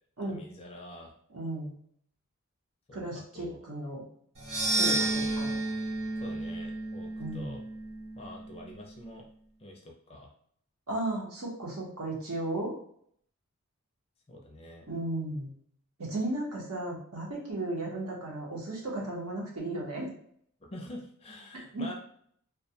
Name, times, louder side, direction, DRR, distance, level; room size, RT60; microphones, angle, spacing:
voice 1, 0.3-1.1 2.9-3.6 4.6-5.4 6.2-7.6 8.1-9.3 9.6-10.3 14.3-14.9 20.6-21.9, left 1 dB, 25° left, 0 dB, 0.4 m, -46 dB
voice 2, 1.3-1.7 2.9-4.0 4.8-5.6 7.2-7.6 10.9-12.7 14.9-15.5 16.0-20.1 21.7-21.9, right 2 dB, 75° right, -3 dB, 0.9 m, -35 dB
sound 1, 4.3-8.7, right 2 dB, 30° right, 0.6 m, -32 dB
2.2 x 2.1 x 2.7 m, 0.64 s
head